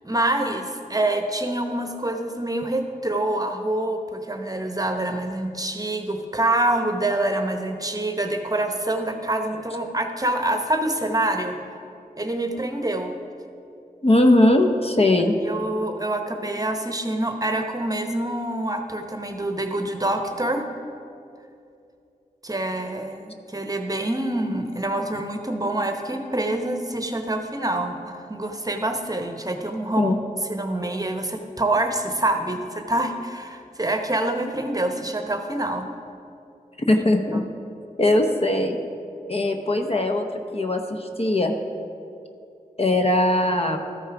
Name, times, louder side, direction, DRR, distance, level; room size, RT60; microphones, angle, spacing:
voice 1, 0.0-11.6 12.2-13.1 15.4-20.7 22.4-30.1 30.5-35.9 36.9-37.0 37.3-37.4, right 1 dB, 25° right, 5 dB, 0.9 m, -26 dB
voice 2, 14.0-15.3 30.0-30.2 36.9-37.4 38.0-38.8 39.3-40.3 40.5-41.5 42.8-43.8, left 1 dB, 40° left, 5 dB, 0.8 m, -20 dB
13.0 x 5.5 x 4.8 m, 2.6 s
cardioid pair, 45°, 15 cm